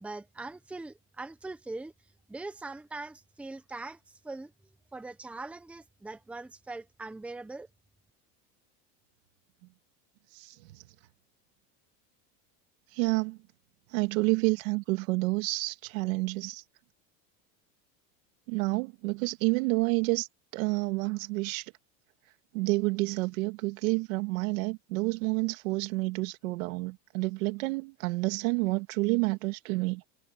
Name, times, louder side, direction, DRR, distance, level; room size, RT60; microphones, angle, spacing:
voice 1, 0.0-1.9 2.3-4.5 4.9-7.7, right 3 dB, 5° right, 0.9 m, -41 dB
voice 2, 12.9-13.4 13.9-16.6 18.5-20.3 20.5-21.7 22.5-30.0, right 26 dB, 80° right, 2.3 m, -29 dB
cardioid pair, 170°, 40 cm